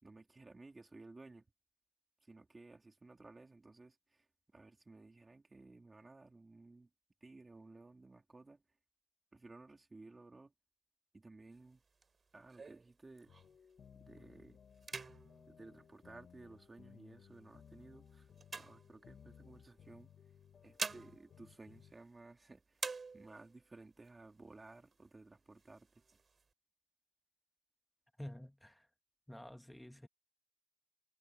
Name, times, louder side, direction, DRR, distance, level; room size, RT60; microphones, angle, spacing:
voice 1, 0.0-1.5 2.2-6.9 7.2-8.6 9.3-10.5 11.1-11.8 12.3-13.3 14.0-14.6 15.5-18.3 18.6-20.1 20.6-22.8 23.1-26.0, right 3 dB, 30° right, 3.6 m, -57 dB
sound 1, 11.5-13.7 14.2-14.4 14.7-16.7 17.3-19.5 20.4-22.4 22.7-23.6 24.0-24.1 24.4-25.1 25.5-26.4, right 4 dB, 50° right, 3.8 m, -48 dB
sound 2, 13.3-21.9, left 7 dB, 90° left, 1.5 m, -61 dB
voice 2, 28.2-28.9 29.3-30.1, left 1 dB, 5° left, 1.7 m, -50 dB
wide cardioid pair, 95°, 0 cm